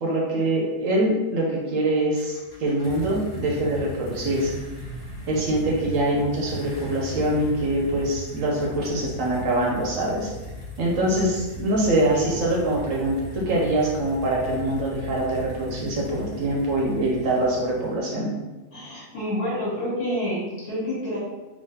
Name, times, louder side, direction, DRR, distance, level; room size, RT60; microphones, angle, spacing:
voice 1, 0.0-4.5 5.3-10.3 10.8-18.4, right 1 dB, 65° right, -2 dB, 1.0 m, -24 dB
sound 1, 2.2-18.1, left 1 dB, 55° left, 1.5 m, -38 dB
voice 2, 18.7-21.2, equal, 70° left, -7 dB, 1.8 m, -28 dB
3.7 x 2.9 x 2.7 m, 1.2 s
omnidirectional pair, 1.6 m